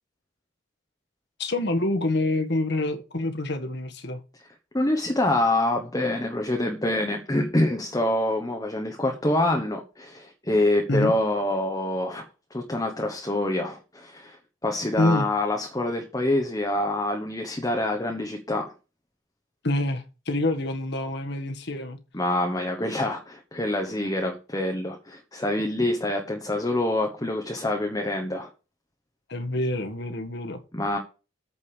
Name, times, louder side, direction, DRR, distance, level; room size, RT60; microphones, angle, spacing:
voice 1, 1.4-4.2 10.9-11.1 15.0-15.3 19.6-22.0 29.3-30.6, left 2 dB, 55° left, 1.6 m, -26 dB
voice 2, 4.7-12.2 12.5-14.4 14.6-18.7 22.1-28.5 30.7-31.0, left 1 dB, 15° left, 1.1 m, -26 dB
8.7 x 5.3 x 6.9 m
head